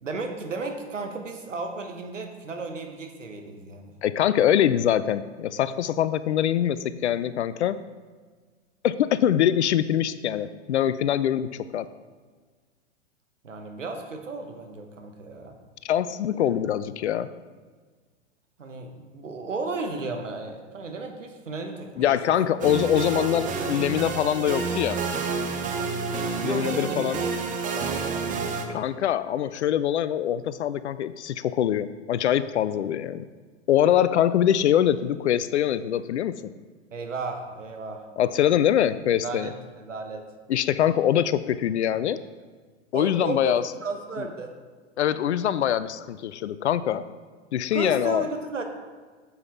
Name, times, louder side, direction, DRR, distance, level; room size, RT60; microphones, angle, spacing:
voice 1, 0.0-3.9 13.4-15.5 16.3-16.5 18.6-22.2 26.4-27.2 27.5-28.8 36.9-38.0 39.2-40.3 42.9-43.5 43.8-44.5 47.7-48.6, right 3 dB, 80° right, 5 dB, 1.3 m, -34 dB
voice 2, 4.0-7.8 8.8-11.9 15.8-17.3 22.0-25.0 26.4-27.2 28.7-33.2 33.7-36.3 38.2-39.5 40.5-42.2 42.9-43.6 45.0-47.1 47.5-48.3, left 10 dB, 65° left, 14 dB, 0.5 m, -23 dB
sound 1, 22.6-28.7, right 4 dB, 20° right, 0.9 m, -29 dB
9.5 x 7.1 x 3.6 m, 1.5 s
figure-of-eight pair, 100°, 37 cm